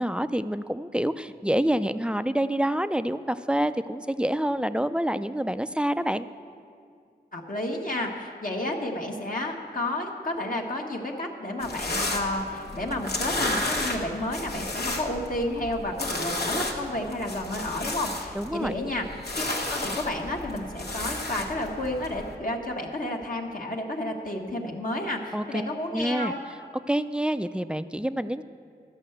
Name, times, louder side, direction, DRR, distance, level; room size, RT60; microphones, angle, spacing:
voice 1, 0.0-6.3 18.3-18.7 25.3-25.6 25.9-26.3 26.9-28.4, right 1 dB, 5° right, 12 dB, 0.3 m, -27 dB
voice 2, 7.3-19.0 19.3-26.4, left 1 dB, 55° left, 0 dB, 1.2 m, -31 dB
sound 1, 11.6-22.3, left 2 dB, 75° left, 1.3 m, -33 dB
12.5 x 5.6 x 7.8 m, 2.3 s
wide cardioid pair, 50°, 17 cm